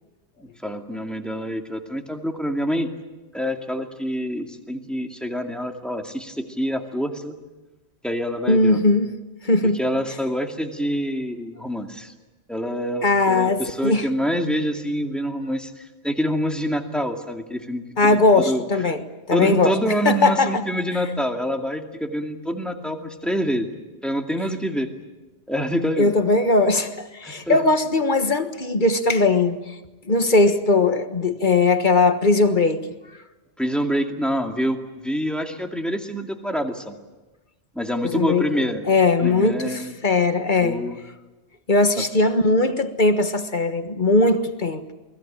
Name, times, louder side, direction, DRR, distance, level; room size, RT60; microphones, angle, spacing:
voice 1, 0.4-2.9 3.3-7.4 8.0-8.8 9.6-12.1 12.5-18.6 19.3-23.7 24.0-24.9 25.5-26.1 27.2-27.6 33.6-34.8 35.0-37.0 37.7-38.9 39.2-39.9 40.6-41.0 42.0-42.1, equal, ahead, 2.3 m, -26 dB
voice 2, 8.5-9.1 9.4-9.8 13.0-14.1 18.0-19.7 20.0-20.6 26.0-29.7 30.1-32.9 38.1-38.5 38.9-40.8 41.7-44.9, left 3 dB, 45° left, 1.5 m, -19 dB
28.5 x 20.5 x 8.9 m
omnidirectional pair, 1.2 m